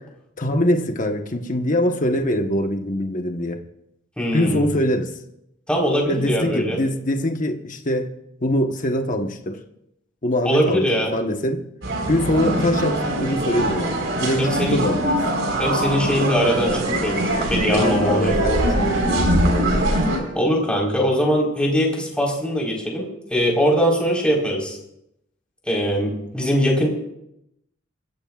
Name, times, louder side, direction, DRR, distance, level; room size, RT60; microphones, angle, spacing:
voice 1, 0.4-3.6 4.3-5.1 6.1-8.1 8.4-9.6 10.2-10.8 11.1-11.7 12.1-15.1 17.7-19.8, left 1 dB, 40° left, 4 dB, 1.2 m, -23 dB
voice 2, 4.2-4.7 5.7-6.8 10.4-11.1 14.4-14.8 15.6-18.4 20.3-24.8 25.7-26.9, equal, 5° left, -2 dB, 4.3 m, -21 dB
sound 1, 11.8-20.2, right 1 dB, 70° right, 4.4 m, -22 dB
27.5 x 15.0 x 2.5 m, 0.81 s
head